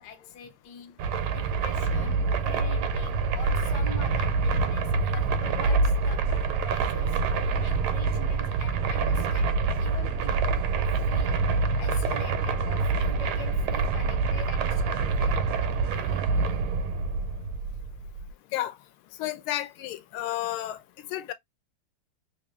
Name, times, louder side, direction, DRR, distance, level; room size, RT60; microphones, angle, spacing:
voice 1, 0.0-7.2 7.6-16.2, left 6 dB, 60° left, 1.2 m, -45 dB
sound 1, 1.0-18.3, right 4 dB, 90° right, 1.5 m, -26 dB
sound 2, 6.1-16.3, right 6 dB, 65° right, 0.8 m, -46 dB
voice 2, 19.2-20.8 21.1-21.3, left 14 dB, 85° left, 1.5 m, -31 dB
3.6 x 2.4 x 3.2 m
omnidirectional pair, 2.3 m